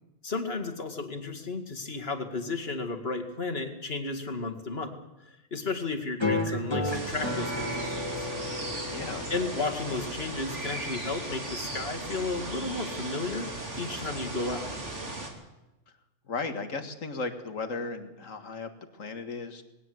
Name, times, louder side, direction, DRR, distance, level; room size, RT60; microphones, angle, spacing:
voice 1, 0.2-5.0 5.2-8.3 9.3-14.7, left 3 dB, 50° left, 4 dB, 2.4 m, -33 dB
sound 1, 6.2-11.2, left 2 dB, 20° left, 2.5 m, -33 dB
sound 2, 6.9-15.3, right 2 dB, 65° right, 3.6 m, -37 dB
voice 2, 8.9-9.3 16.3-19.6, left 3 dB, 80° left, 8 dB, 2.1 m, -36 dB
19.5 x 18.0 x 7.9 m, 0.97 s
omnidirectional pair, 1.3 m